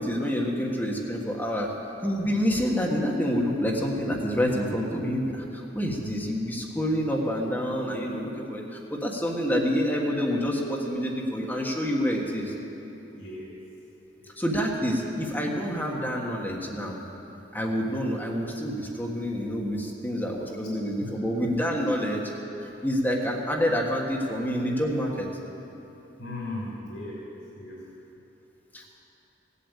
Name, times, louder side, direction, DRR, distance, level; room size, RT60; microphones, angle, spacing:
voice 1, 0.0-1.7 2.0-12.5 14.4-17.0 17.5-22.3 22.8-25.3 28.7-28.9, equal, 10° left, -2 dB, 1.6 m, -27 dB
voice 2, 13.2-13.5 14.2-14.3 21.0-21.1 26.2-27.2 27.6-27.8, left 2 dB, 70° left, -9 dB, 3.5 m, -37 dB
16.5 x 8.4 x 8.3 m, 2.9 s
head